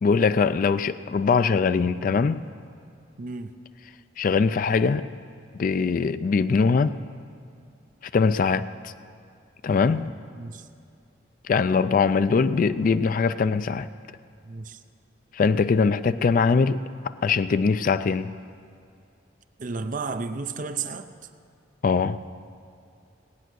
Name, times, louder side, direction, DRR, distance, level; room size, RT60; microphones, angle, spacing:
voice 1, 0.0-2.5 4.2-5.1 5.5-7.0 8.0-8.9 9.6-10.1 11.4-13.9 15.3-18.3 21.8-22.2, left 5 dB, 45° left, 0.3 m, -22 dB
voice 2, 3.2-3.5 10.3-10.7 14.4-14.8 19.6-21.1, right 4 dB, 45° right, 0.5 m, -32 dB
18.5 x 9.2 x 6.2 m
head